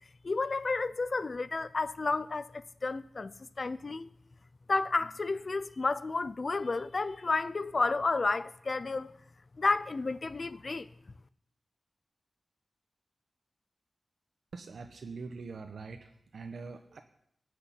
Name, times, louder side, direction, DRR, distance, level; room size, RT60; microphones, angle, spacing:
voice 1, 0.2-3.3 3.6-4.1 4.7-9.1 9.6-10.9, left 3 dB, 40° left, 0.5 m, -31 dB
voice 2, 14.5-17.0, right 4 dB, 75° right, 1.1 m, -43 dB
17.5 x 6.6 x 10.0 m
wide cardioid pair, 135°, 0 cm